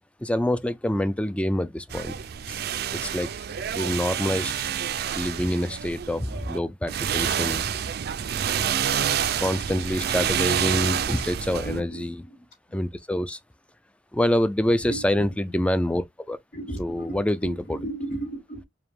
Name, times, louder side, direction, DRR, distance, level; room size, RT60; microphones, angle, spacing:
voice 1, 0.2-2.2 2.5-2.6 2.9-3.3 3.7-4.5 5.2-7.7 8.5-9.1 9.4-12.2 12.7-13.4 14.1-16.4 16.8-17.8, left 1 dB, 5° left, 0.3 m, -26 dB
sound 1, 1.9-6.6 6.9-11.8, right 8 dB, 60° right, 0.4 m, -28 dB
voice 2, 10.9-12.4 14.8-15.7 16.5-18.7, right 2 dB, 60° left, 2.0 m, -37 dB
4.9 x 2.3 x 3.4 m
head